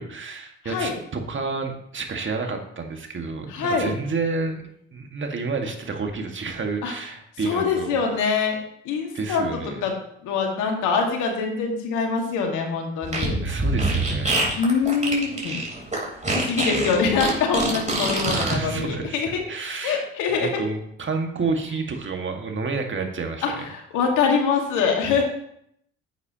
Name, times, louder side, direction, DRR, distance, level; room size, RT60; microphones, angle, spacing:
voice 1, 0.0-4.6 4.9-8.0 9.1-9.9 13.4-14.5 15.4-15.7 18.2-23.6, right 4 dB, 40° right, 3 dB, 1.9 m, -30 dB
voice 2, 0.6-1.0 3.5-4.0 6.8-6.9 7.4-8.6 8.9-9.9 10.2-13.4 14.6-15.6 16.3-19.4 19.8-20.6 23.4-25.2, left 5 dB, 70° left, 2 dB, 2.0 m, -24 dB
Fart, 13.0-18.5, right 2 dB, 20° right, 3.8 m, -25 dB
10.5 x 8.1 x 3.0 m, 0.73 s
hypercardioid pair, 55°, 32 cm